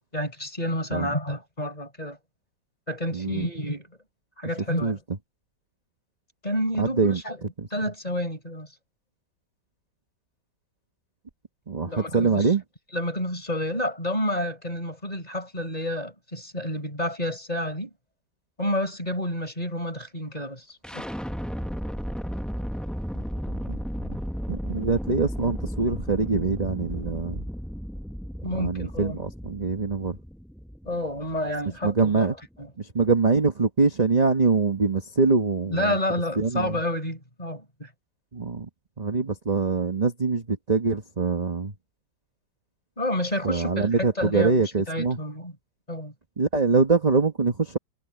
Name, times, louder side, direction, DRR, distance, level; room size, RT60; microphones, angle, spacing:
voice 1, 0.1-2.2 2.9-3.9 4.4-5.0 6.4-7.4 7.7-8.7 11.8-12.5 12.9-17.9 18.6-21.1 28.4-29.2 30.9-32.3 32.6-32.7 35.7-37.9 43.0-45.5 45.9-46.1, left 1 dB, 20° left, 5.2 m, -29 dB
voice 2, 3.1-3.5 4.8-5.0 6.8-7.2 7.6-7.7 11.7-12.6 23.7-23.8 24.0-24.2 24.5-27.4 28.6-30.2 31.8-32.3 32.8-36.0 36.4-36.8 38.3-38.7 39.0-41.7 43.4-45.2 46.4-47.8, right 4 dB, 25° right, 1.3 m, -24 dB
sound 1, 20.8-32.7, equal, ahead, 0.4 m, -34 dB
omnidirectional pair, 2.1 m